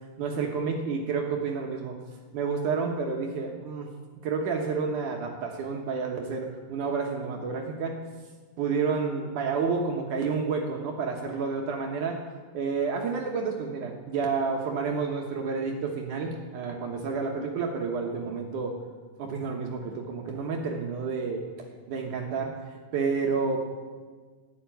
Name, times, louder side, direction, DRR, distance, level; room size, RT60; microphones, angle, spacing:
voice 1, 0.2-2.0 2.3-3.9 4.2-8.0 8.6-12.2 12.5-18.8 19.2-22.6 22.9-23.6, right 5 dB, 70° right, 1 dB, 2.6 m, -30 dB
12.5 x 9.5 x 9.2 m, 1.4 s
omnidirectional pair, 3.8 m